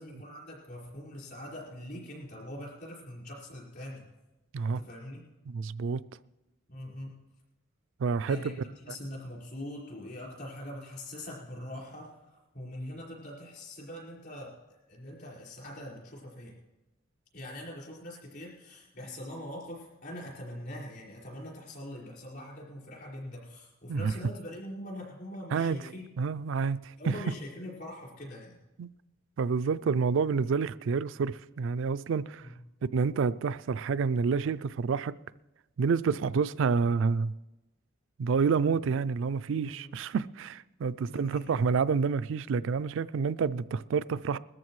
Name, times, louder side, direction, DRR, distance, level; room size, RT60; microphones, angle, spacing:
voice 1, 0.0-4.0 4.7-5.2 6.7-7.2 8.3-14.6 14.9-16.6 17.3-26.0 27.0-28.6 32.4-32.6 39.6-40.0 41.0-41.5, left 1 dB, 50° left, 5.1 m, -43 dB
voice 2, 5.5-6.0 8.0-8.4 23.9-24.1 25.5-25.8 26.2-27.1 28.8-28.9 29.4-32.4 32.9-35.1 35.8-37.3 38.2-44.4, right 5 dB, 65° right, 0.3 m, -28 dB
21.0 x 14.0 x 3.2 m
head